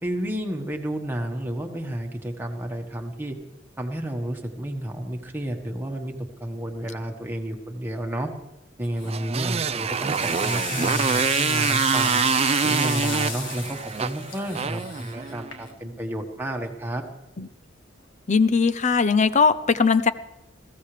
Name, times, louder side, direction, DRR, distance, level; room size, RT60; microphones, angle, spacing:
voice 1, 0.0-3.4 3.8-6.1 6.4-8.3 8.8-12.2 12.6-17.0, right 1 dB, 10° right, 2 dB, 1.5 m, -31 dB
sound 1, 8.8-9.2 9.7-16.0, left 5 dB, 80° left, 1.8 m, -34 dB
Motorcycle, 9.0-15.6, right 6 dB, 35° right, 0.4 m, -25 dB
voice 2, 18.3-20.1, left 5 dB, 40° left, 14 dB, 0.6 m, -19 dB
21.0 x 15.5 x 3.4 m, 0.95 s
head